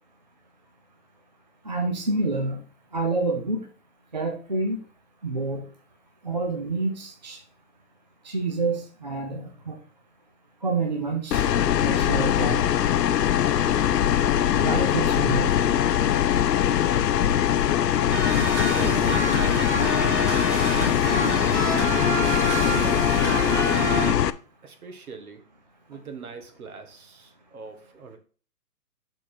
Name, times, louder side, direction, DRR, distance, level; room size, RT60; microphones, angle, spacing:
voice 1, 1.6-2.6 2.9-3.7 4.1-4.8 5.2-5.6 6.2-7.4 8.2-9.8 10.6-11.5 11.8-12.6 14.5-15.6, right 3 dB, 30° right, 0.5 m, -28 dB
sound 1, 11.3-24.3, left 10 dB, 90° left, 0.7 m, -22 dB
sound 2, 18.1-24.1, right 3 dB, 45° right, 2.2 m, -28 dB
voice 2, 18.7-19.4 20.4-21.6 21.9-23.3 24.6-25.5 25.9-28.2, right 5 dB, 65° right, 1.7 m, -42 dB
6.6 x 4.2 x 5.0 m
hypercardioid pair, 175°, 47 cm